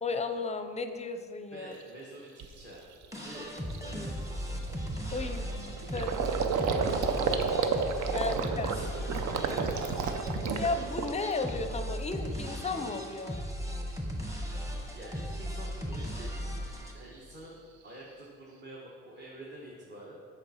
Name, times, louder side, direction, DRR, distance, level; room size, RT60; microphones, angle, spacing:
voice 1, 0.0-1.7 5.1-6.1 8.1-8.7 10.5-13.4, left 3 dB, 20° left, 8 dB, 0.5 m, -34 dB
voice 2, 1.5-2.9 3.2-3.5 3.8-4.5 5.0-5.4 5.9-6.9 7.2-7.6 8.1-10.5 14.9-16.3 16.9-20.2, right 1 dB, 35° right, -4 dB, 1.2 m, -48 dB
Gurgling, 1.8-1.9 2.4-2.6 3.0-3.2 3.4-11.5 11.8-12.5, right 5 dB, 70° right, 0.6 m, -32 dB
sound 1, 3.1-16.9, equal, 10° right, 1.1 m, -37 dB
6.8 x 4.3 x 5.5 m, 2.1 s
cardioid pair, 90°, 30 cm